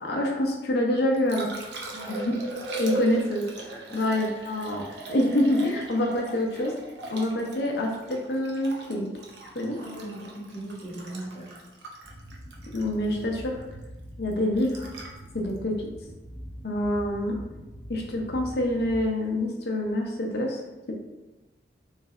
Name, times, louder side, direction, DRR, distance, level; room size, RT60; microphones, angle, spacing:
voice 1, 0.0-1.5 2.1-2.4 2.8-3.4 3.9-6.7 7.1-9.1 9.5-9.8 12.7-13.6 14.2-14.9 15.3-15.7 16.6-17.4 17.9-20.6, left 1 dB, 60° left, 0 dB, 0.7 m, -26 dB
Liquid, 0.9-17.0 19.8-19.9, right 2 dB, 70° right, 0.7 m, -39 dB
voice 2, 9.7-11.7, right 1 dB, 35° right, -7 dB, 1.4 m, -39 dB
sound 1, 12.0-19.1, equal, 25° left, 0.9 m, -43 dB
3.2 x 3.2 x 3.7 m, 1.1 s
head